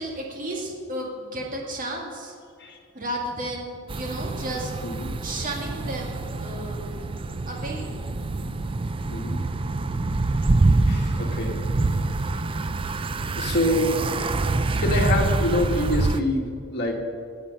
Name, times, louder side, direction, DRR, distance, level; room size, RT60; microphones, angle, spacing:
voice 1, 0.0-2.3 2.9-4.7 5.2-7.0 7.4-7.9, right 1 dB, 40° right, -1 dB, 2.2 m, -33 dB
sound 1, 3.9-16.2, right 2 dB, 25° right, 0.4 m, -26 dB
voice 2, 4.8-5.1 8.6-8.8 9.1-9.4 10.9-11.6 13.3-14.1 14.5-17.0, left 1 dB, 55° left, 0 dB, 2.0 m, -26 dB
17.5 x 7.5 x 5.5 m, 2.3 s
head